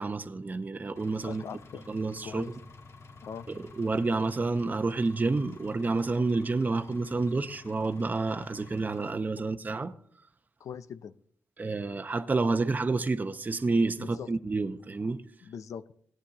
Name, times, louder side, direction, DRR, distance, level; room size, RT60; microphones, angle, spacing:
voice 1, 0.0-1.4 1.9-2.5 3.5-9.9 11.6-15.2, right 3 dB, 30° right, 0.7 m, -29 dB
Engine, 1.0-9.1, left 4 dB, 55° left, 1.3 m, -50 dB
voice 2, 1.2-1.8 2.2-2.5 3.2-3.5 10.6-11.1 14.0-14.3 15.4-15.8, left 7 dB, 75° left, 0.5 m, -41 dB
17.0 x 9.9 x 2.9 m
cardioid pair, 70°, 6 cm